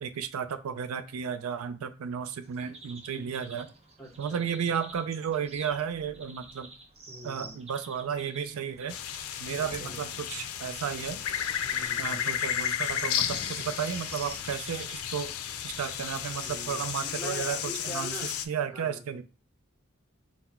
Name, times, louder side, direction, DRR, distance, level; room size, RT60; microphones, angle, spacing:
voice 1, 0.0-3.7 4.2-6.7 7.2-9.0 9.4-11.2 12.0-15.3 15.6-17.6 17.8-18.1 18.5-19.2, right 7 dB, 80° right, 11 dB, 0.4 m, -33 dB
sound 1, 2.4-17.5, right 2 dB, 30° right, 0.8 m, -50 dB
voice 2, 4.0-4.7 7.1-7.6 9.4-10.0 11.6-12.4 16.3-18.3 18.7-19.2, equal, 10° left, -1 dB, 1.2 m, -44 dB
sound 2, 8.9-18.4, left 9 dB, 85° left, 0.4 m, -33 dB
sound 3, 9.5-14.6, left 2 dB, 40° left, 0.6 m, -49 dB
3.9 x 2.1 x 4.2 m, 0.33 s
head